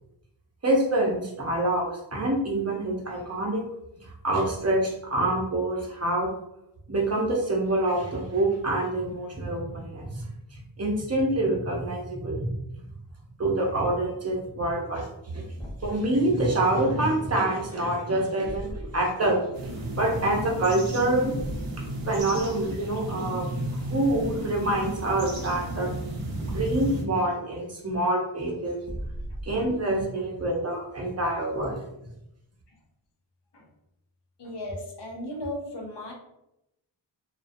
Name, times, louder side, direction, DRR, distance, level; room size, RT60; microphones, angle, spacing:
voice 1, 0.6-3.7 4.0-6.3 6.9-12.5 13.4-15.5 15.8-21.3 22.1-25.9 26.4-28.8 29.4-31.8, right 1 dB, 30° right, -2 dB, 0.8 m, -26 dB
Thump thud, 15.5-16.1 18.4-19.1 21.3-21.8 24.1-24.6 26.4-27.0 28.8-29.8, equal, 10° left, 0.5 m, -38 dB
sound 1, 19.5-27.0, right 1 dB, 90° right, 0.7 m, -33 dB
voice 2, 30.1-30.5 33.5-33.7 34.4-36.1, left 1 dB, 60° left, -1 dB, 0.7 m, -36 dB
2.3 x 2.2 x 2.5 m, 0.86 s
cardioid pair, 50°, 47 cm